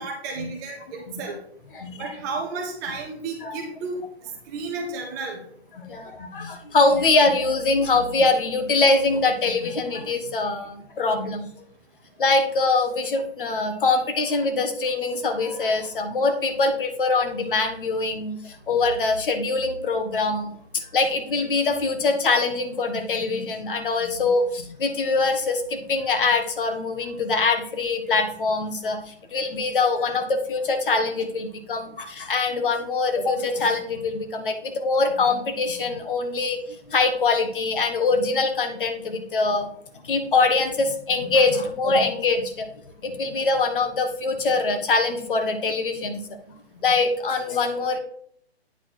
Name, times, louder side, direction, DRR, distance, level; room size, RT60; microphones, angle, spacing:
voice 1, 0.0-1.4 2.0-4.0 4.5-5.4, right 3 dB, 15° right, 2 dB, 0.7 m, -32 dB
voice 2, 1.7-2.0 3.4-3.6 5.8-11.5 12.2-39.7 40.0-42.7 43.0-46.2 46.8-48.0, left 3 dB, 50° left, 6 dB, 1.4 m, -23 dB
8.8 x 4.3 x 4.5 m, 0.64 s
figure-of-eight pair, 140°, 33 cm